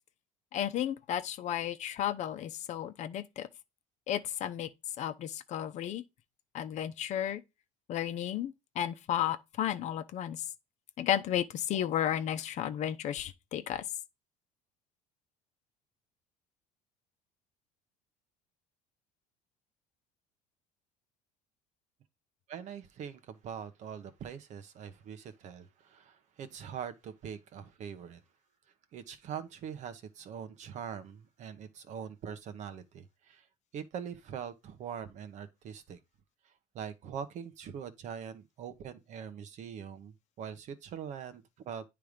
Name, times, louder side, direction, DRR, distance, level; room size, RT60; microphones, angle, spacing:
voice 1, 0.5-3.5 4.1-4.7 5.0-6.0 6.5-7.4 7.9-10.4 11.0-13.8, left 10 dB, 50° left, 0.8 m, -33 dB
voice 2, 22.5-28.2 28.9-33.5 33.7-36.0 36.4-41.8, right 8 dB, 50° right, 1.1 m, -43 dB
9.4 x 3.4 x 5.1 m
cardioid pair, 120°, 15 cm